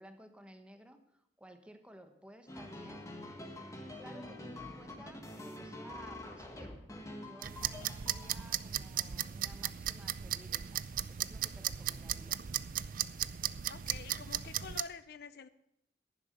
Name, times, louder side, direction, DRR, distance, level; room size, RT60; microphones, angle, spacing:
voice 1, 0.0-3.0 4.0-6.8 7.2-10.8 11.1-12.4, equal, 5° right, 7 dB, 1.1 m, -55 dB
sound 1, 2.5-8.4, left 1 dB, 20° left, 1.6 m, -46 dB
sound 2, 7.4-14.8, right 11 dB, 50° right, 0.4 m, -37 dB
voice 2, 13.7-15.5, left 5 dB, 60° left, 14 dB, 0.5 m, -47 dB
11.0 x 10.5 x 6.5 m, 0.81 s
head